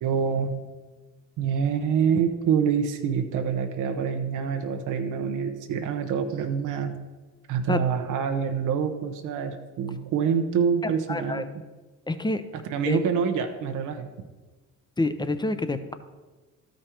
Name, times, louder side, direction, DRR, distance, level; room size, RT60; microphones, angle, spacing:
voice 1, 0.0-0.6 1.4-7.0 7.5-11.5 12.7-14.1, right 7 dB, 85° right, 5 dB, 0.8 m, -26 dB
voice 2, 11.1-11.4 12.1-12.4 12.8-13.0 15.0-15.9, left 2 dB, 15° left, 11 dB, 0.7 m, -27 dB
12.5 x 5.2 x 4.4 m, 1.3 s
cardioid pair, 90°, 30 cm